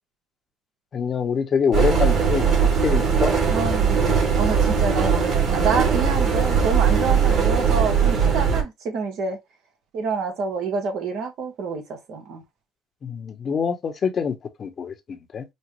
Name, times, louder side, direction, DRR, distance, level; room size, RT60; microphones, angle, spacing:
voice 1, 0.9-2.5 2.8-3.3 13.0-15.4, left 6 dB, 50° left, 1.0 m, -25 dB
sound 1, 1.7-8.6, right 6 dB, 55° right, 2.8 m, -20 dB
voice 2, 3.5-4.0 4.4-9.4 9.9-12.4, right 5 dB, 70° right, 1.7 m, -27 dB
5.3 x 2.5 x 3.1 m
supercardioid pair, 70°, 0 cm